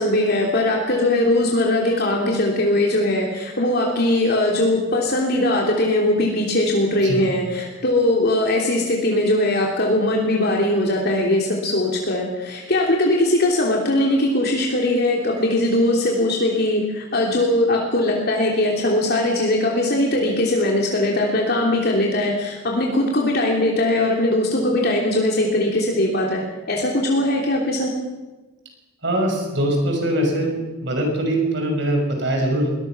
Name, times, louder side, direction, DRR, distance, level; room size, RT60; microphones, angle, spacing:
voice 1, 0.0-26.4 26.7-27.9, left 1 dB, 55° left, -1 dB, 3.2 m, -20 dB
voice 2, 29.0-32.8, right 1 dB, 65° right, 3 dB, 5.9 m, -22 dB
22.0 x 20.0 x 6.1 m, 1.1 s
head